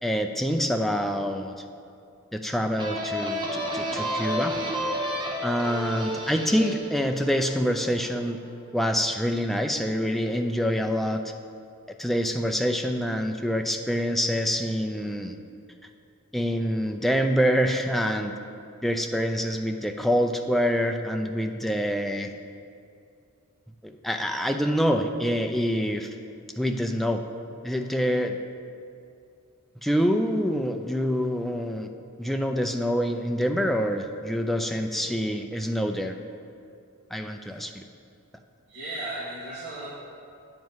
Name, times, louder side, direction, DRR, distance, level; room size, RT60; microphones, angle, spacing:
voice 1, 0.0-1.6 2.3-4.5 5.4-8.4 8.7-11.2 12.0-15.4 16.3-18.3 18.8-22.3 23.8-26.1 26.6-27.2 27.6-28.4 29.8-31.9 32.2-36.2 37.1-37.8, equal, ahead, 4 dB, 0.4 m, -26 dB
sound 1, 2.8-8.2, equal, 20° right, 1.0 m, -31 dB
voice 2, 38.7-39.9, right 2 dB, 50° right, -10 dB, 2.2 m, -36 dB
9.2 x 7.4 x 4.7 m, 2.5 s
head